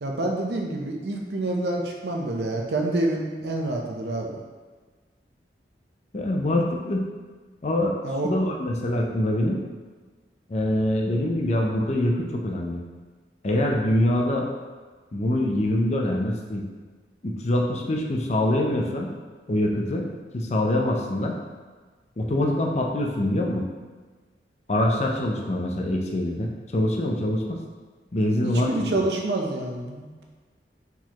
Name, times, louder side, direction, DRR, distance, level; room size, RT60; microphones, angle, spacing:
voice 1, 0.0-4.4 8.0-8.3 28.4-30.1, right 2 dB, 70° right, 1 dB, 0.6 m, -27 dB
voice 2, 6.1-7.0 7.6-8.0 8.2-9.6 10.5-12.8 13.4-14.5 15.1-16.6 17.2-19.1 19.5-20.0 20.3-21.4 22.2-23.7 24.7-27.6 28.1-28.7, left 1 dB, 40° left, 1 dB, 0.5 m, -24 dB
4.5 x 4.0 x 2.9 m, 1.4 s
head